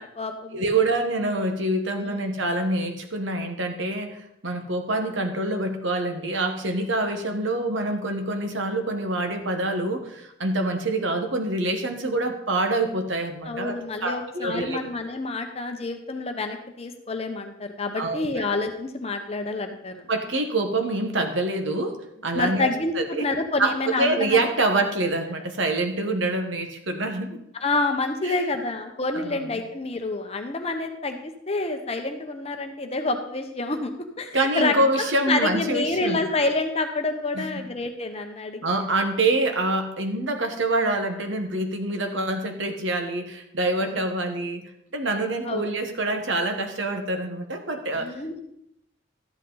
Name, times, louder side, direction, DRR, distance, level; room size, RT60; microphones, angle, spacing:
voice 1, 0.0-0.6 2.0-2.2 13.4-19.9 22.3-24.4 27.6-33.9 34.2-38.9 45.4-45.6 47.9-48.4, left 3 dB, 30° left, 5 dB, 0.9 m, -28 dB
voice 2, 0.5-13.7 14.0-14.8 18.0-18.4 20.1-23.2 23.6-27.4 28.2-28.4 29.1-29.5 34.3-36.2 37.3-37.6 38.6-44.6 44.9-48.1, right 2 dB, 65° right, 5 dB, 1.3 m, -26 dB
12.5 x 8.3 x 3.9 m, 0.78 s
head